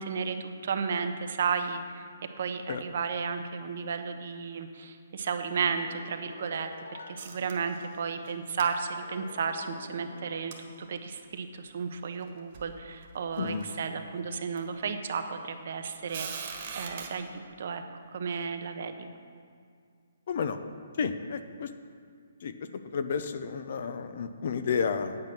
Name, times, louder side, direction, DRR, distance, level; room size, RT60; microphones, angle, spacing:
voice 1, 0.0-2.1 2.4-6.7 7.1-16.3 16.8-17.8 18.1-19.1, right 5 dB, 55° right, 7 dB, 0.9 m, -33 dB
sound 1, 5.5-8.1 8.7-11.2, left 3 dB, 80° left, 1.0 m, -48 dB
sound 2, 7.2-8.0 8.2-8.3 8.6-8.7 10.5-10.6 11.4-11.5 12.2-12.3 12.5-12.8 13.4-13.8 14.6-14.7 16.1-17.1, right 6 dB, 40° right, 1.5 m, -40 dB
voice 2, 13.4-13.7 20.3-20.6 21.0-21.7 22.4-25.2, left 6 dB, 55° left, 10 dB, 0.7 m, -31 dB
8.8 x 8.6 x 6.1 m, 2.2 s
hypercardioid pair, 160°, 0 cm